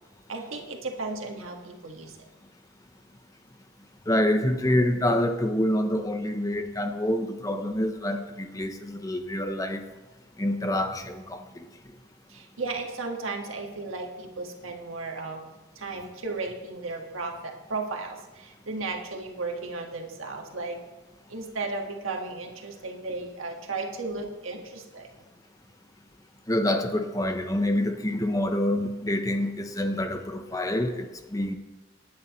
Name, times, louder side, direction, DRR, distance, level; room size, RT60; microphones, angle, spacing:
voice 1, 0.3-2.3 12.3-15.4 15.7-20.8 21.3-25.3, right 3 dB, 85° right, 2 dB, 1.7 m, -35 dB
voice 2, 4.1-9.8 10.4-11.6 26.5-31.5, left 1 dB, 15° left, 7 dB, 0.7 m, -27 dB
19.5 x 9.5 x 3.1 m, 1.1 s
head